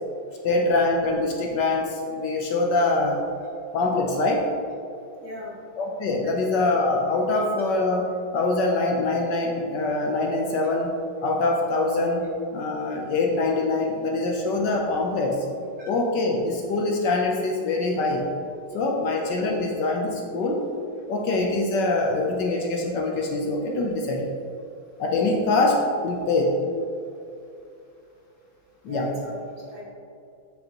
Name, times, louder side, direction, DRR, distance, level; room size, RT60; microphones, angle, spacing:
voice 1, 0.4-3.2 3.7-4.5 5.8-15.5 15.9-18.3 18.7-20.7 21.1-24.3 25.0-26.6 28.8-29.2, left 2 dB, 70° left, 0 dB, 1.3 m, -24 dB
voice 2, 5.2-5.5 6.2-6.5 15.8-15.9 28.9-29.4 29.7-29.8, equal, 45° right, -5 dB, 1.5 m, -38 dB
7.7 x 7.0 x 2.9 m, 2.6 s
omnidirectional pair, 2.2 m